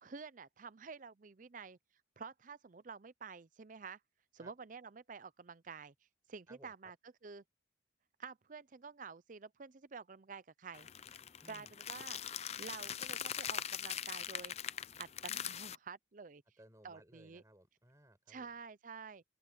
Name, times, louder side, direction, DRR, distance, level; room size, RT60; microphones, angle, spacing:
voice 1, 0.0-1.8 2.2-4.0 4.3-5.9 6.3-7.4 8.2-11.2 11.5-12.2 12.6-14.5 15.0-16.4 16.8-17.4 18.3-19.2, right 5 dB, 45° right, 0.6 m, -50 dB
voice 2, 6.5-6.9 11.4-11.7 16.6-18.5, right 1 dB, 15° right, 7.2 m, -61 dB
sound 1, 10.7-15.7, left 9 dB, 35° left, 0.5 m, -42 dB
open air
head